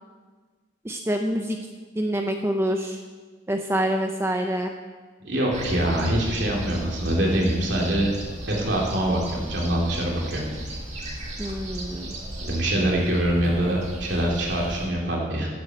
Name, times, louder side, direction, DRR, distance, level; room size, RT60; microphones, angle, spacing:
voice 1, 0.8-1.6 2.0-3.0 3.5-4.7 11.4-12.2, equal, 15° right, 4 dB, 0.7 m, -26 dB
voice 2, 5.2-8.1 8.5-10.4 12.4-15.5, right 1 dB, 60° right, -2 dB, 3.3 m, -24 dB
sound 1, 5.5-14.9, right 1 dB, 35° right, 2.3 m, -35 dB
10.5 x 9.5 x 7.7 m, 1.4 s
head